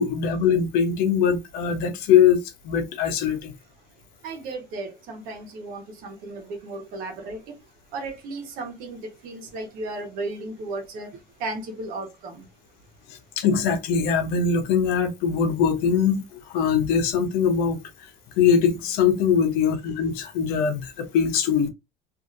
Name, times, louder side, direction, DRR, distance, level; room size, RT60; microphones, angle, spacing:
voice 1, 0.0-2.4 2.6-3.5 13.4-16.2 16.5-17.8 18.4-21.7, left 7 dB, 80° left, 0.8 m, -21 dB
voice 2, 4.2-7.4 7.9-9.0 9.2-11.1 11.4-12.4, right 2 dB, 65° right, 1.1 m, -34 dB
2.7 x 2.7 x 2.5 m
cardioid pair, 155°, 16 cm